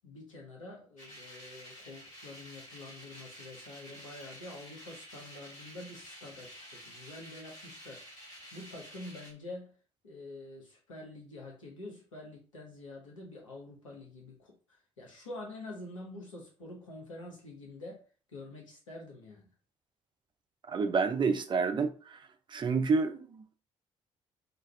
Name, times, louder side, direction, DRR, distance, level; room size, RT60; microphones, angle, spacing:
voice 1, 0.0-8.0 8.5-9.8 10.0-18.0 18.3-19.5, left 2 dB, 85° left, 0.7 m, -47 dB
sound 1, 1.0-9.3, equal, 50° left, 1.4 m, -50 dB
voice 2, 20.7-22.2 22.5-23.6, right 4 dB, 30° right, 0.4 m, -29 dB
2.4 x 2.3 x 3.2 m
figure-of-eight pair, 45°, 16 cm